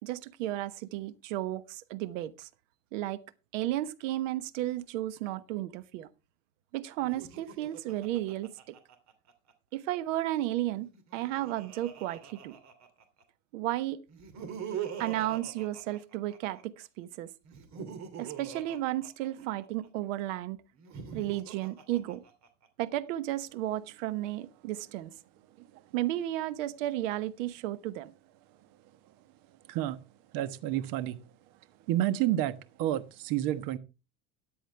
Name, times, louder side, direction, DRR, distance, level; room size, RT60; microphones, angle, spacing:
voice 1, 0.0-2.5 2.9-3.2 3.5-6.1 6.7-8.7 9.7-12.6 13.5-14.0 15.0-17.3 18.2-20.6 21.1-22.2 22.8-25.1 25.9-28.1, right 14 dB, 85° right, 1.1 m, -33 dB
Laughter, 7.0-9.5 10.8-13.2 14.1-16.6 17.4-19.9 20.7-22.7, right 8 dB, 50° right, 2.8 m, -43 dB
voice 2, 30.3-31.2 31.9-33.8, right 13 dB, 65° right, 1.3 m, -30 dB
13.5 x 10.0 x 3.3 m
supercardioid pair, 120°, 37 cm